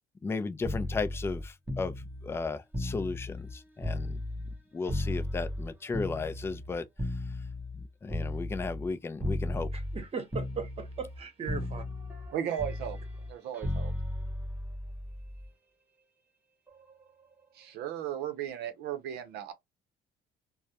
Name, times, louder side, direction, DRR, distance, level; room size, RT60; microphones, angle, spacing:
voice 1, 0.2-4.2 4.7-6.9 7.7-9.7, left 4 dB, 15° left, 0.3 m, -35 dB
sound 1, 0.6-4.6 4.9-8.9 9.2-10.0 10.3-11.2 11.5-15.5 16.7-16.9, left 1 dB, 10° right, 0.7 m, -35 dB
voice 2, 9.7-11.8, right 5 dB, 35° right, 0.9 m, -38 dB
voice 3, 12.3-13.0 13.3-13.9 17.5-19.5, right 10 dB, 80° right, 0.6 m, -35 dB
2.2 x 2.0 x 2.7 m
cardioid pair, 110°, 17 cm